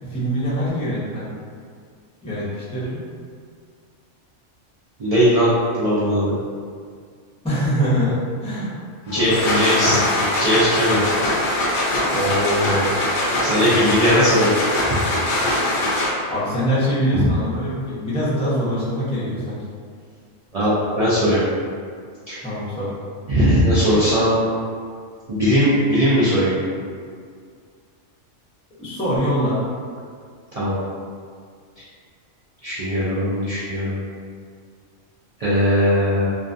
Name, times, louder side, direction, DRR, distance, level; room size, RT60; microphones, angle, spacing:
voice 1, 0.0-1.3 2.2-3.0 7.4-8.7 9.2-10.1 12.1-12.9 13.6-13.9 16.3-19.6 22.4-22.9 28.8-29.6, equal, 5° left, -11 dB, 0.6 m, -24 dB
voice 2, 5.0-6.4 9.1-10.0 10.4-11.0 13.4-15.0 20.5-21.4 22.3-22.4 23.3-24.5 25.3-26.5 30.5-30.7 32.6-33.9 35.4-36.3, equal, 65° right, -11 dB, 0.3 m, -19 dB
sound 1, 9.1-16.4, left 1 dB, 60° left, 0.6 m, -22 dB
2.4 x 2.3 x 2.5 m, 2.1 s
omnidirectional pair, 1.3 m